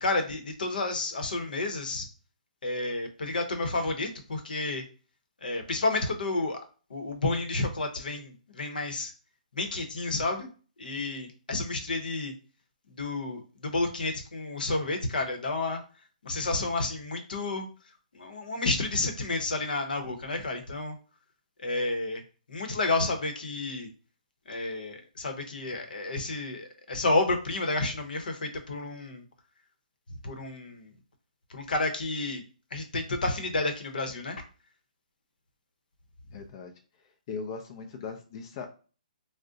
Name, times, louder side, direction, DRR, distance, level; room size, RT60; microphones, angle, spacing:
voice 1, 0.0-2.1 2.6-4.8 5.4-6.6 6.9-9.1 9.5-10.5 10.8-12.3 13.0-15.8 16.2-17.7 18.1-21.0 21.6-22.2 22.5-23.9 24.5-29.2 30.2-30.9 31.5-32.4 32.7-34.4, left 2 dB, 80° left, 5 dB, 0.8 m, -30 dB
voice 2, 36.3-36.7 37.3-38.7, left 5 dB, 35° left, 4 dB, 0.4 m, -38 dB
2.5 x 2.1 x 3.6 m, 0.36 s
hypercardioid pair, 160°, 5 cm